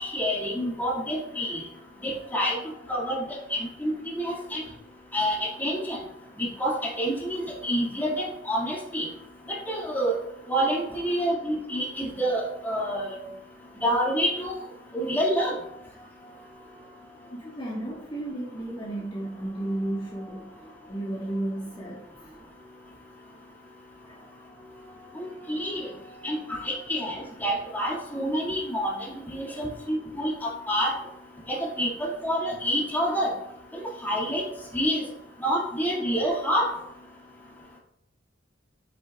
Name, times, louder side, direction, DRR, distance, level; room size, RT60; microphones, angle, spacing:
voice 1, 0.0-1.6 2.0-2.6 2.9-4.6 5.1-6.0 6.4-9.1 9.5-10.2 10.5-13.3 13.8-14.6 14.9-15.6 25.2-25.9 26.2-29.0 29.3-30.9 31.5-33.3 33.7-34.5 34.7-35.1 35.4-36.7, equal, 10° left, -4 dB, 1.9 m, -28 dB
voice 2, 2.0-3.6 4.0-4.6 10.9-11.2 11.9-12.0 14.9-15.1 15.4-22.5 24.0-27.1 29.4-29.8 31.7-31.9 34.6-34.7, right 1 dB, 25° left, -6 dB, 1.5 m, -38 dB
8.4 x 6.8 x 2.3 m, 0.81 s
head